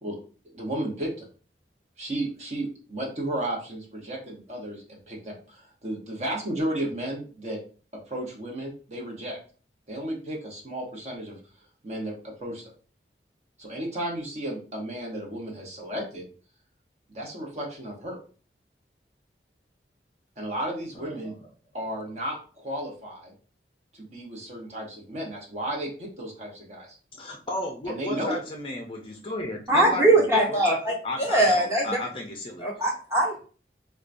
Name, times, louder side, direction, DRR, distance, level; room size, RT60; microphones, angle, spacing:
voice 1, 0.5-1.3 2.0-7.6 8.1-9.4 9.9-11.4 11.8-12.7 13.6-16.3 17.1-18.2 20.4-21.3 21.7-23.3 23.9-27.0 27.9-28.4, right 1 dB, 40° right, -1 dB, 0.8 m, -33 dB
voice 2, 21.0-21.3 27.1-30.8 31.0-32.7, left 1 dB, 30° left, 1 dB, 0.4 m, -34 dB
voice 3, 29.7-32.0 32.6-33.5, right 1 dB, 15° right, -4 dB, 1.1 m, -22 dB
4.4 x 2.2 x 2.5 m, 0.40 s
head